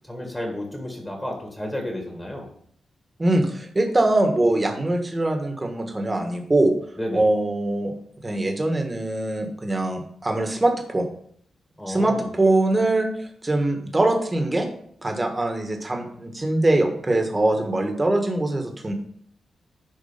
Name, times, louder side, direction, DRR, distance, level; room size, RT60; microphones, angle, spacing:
voice 1, 0.1-2.5 7.0-7.2 11.8-12.2, left 1 dB, 10° left, 1 dB, 1.8 m, -31 dB
voice 2, 3.2-6.7 7.1-7.9 8.2-11.1 11.9-13.1 13.4-14.7 15.0-18.9, right 2 dB, 20° right, 4 dB, 1.5 m, -22 dB
11.0 x 4.4 x 5.7 m, 0.64 s
wide cardioid pair, 150°, 0 cm